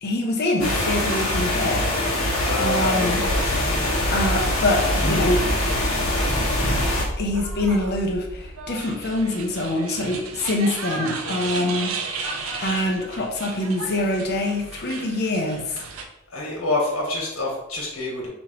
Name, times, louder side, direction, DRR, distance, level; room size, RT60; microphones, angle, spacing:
voice 1, 0.0-1.9 2.2-3.2 4.1-5.4 7.2-15.8, left 1 dB, 50° left, 1 dB, 0.7 m, -25 dB
sound 1, 0.6-7.0, left 1 dB, 70° left, 1.2 m, -23 dB
sound 2, 1.8-9.1, left 1 dB, 65° right, 1.1 m, -31 dB
voice 2, 2.4-3.4 16.3-18.3, left 2 dB, 85° left, -2 dB, 1.6 m, -27 dB
sound 3, 7.2-16.0, right 4 dB, 80° right, 0.6 m, -35 dB
5.4 x 2.9 x 3.0 m, 0.88 s
head